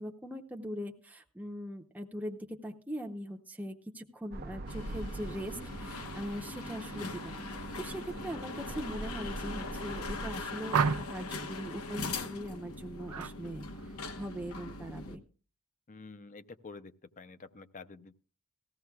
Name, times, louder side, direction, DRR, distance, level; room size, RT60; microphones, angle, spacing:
voice 1, 0.0-13.6 14.1-15.2, equal, 5° right, 3 dB, 0.7 m, -41 dB
sound 1, 4.3-10.4, right 2 dB, 45° right, 0.5 m, -43 dB
sound 2, 4.7-15.2, left 3 dB, 85° left, 1.0 m, -41 dB
sound 3, 10.7-11.3 13.1-13.4 13.7-14.1, right 5 dB, 90° right, 0.5 m, -31 dB
voice 2, 15.9-18.2, left 4 dB, 35° left, 11 dB, 0.6 m, -49 dB
18.5 x 14.5 x 2.3 m, 0.36 s
head